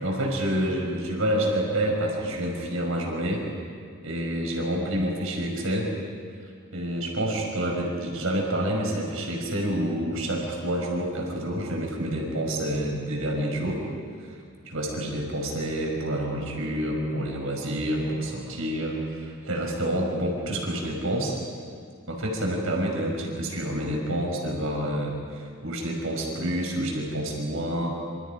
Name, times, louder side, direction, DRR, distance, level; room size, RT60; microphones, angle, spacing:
voice 1, 0.0-3.5 4.0-5.9 6.7-13.8 14.2-21.4 22.1-28.0, right 1 dB, 75° right, 0 dB, 5.6 m, -28 dB
27.5 x 26.5 x 5.2 m, 2.2 s
head